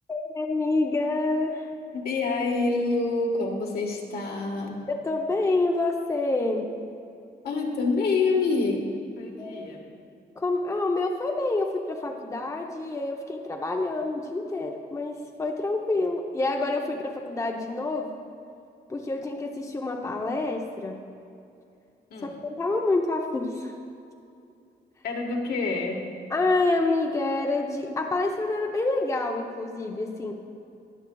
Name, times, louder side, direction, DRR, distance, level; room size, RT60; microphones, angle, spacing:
voice 1, 0.1-1.7 4.9-6.7 9.4-9.6 10.3-18.1 18.9-21.0 22.2-23.7 26.3-30.3, left 2 dB, 20° left, 1 dB, 0.6 m, -27 dB
voice 2, 1.9-4.8 7.4-8.8 9.2-9.8 22.1-22.3 25.0-26.0, left 3 dB, 65° left, 1 dB, 1.4 m, -27 dB
20.5 x 7.1 x 2.3 m, 2.6 s
wide cardioid pair, 140°, 17 cm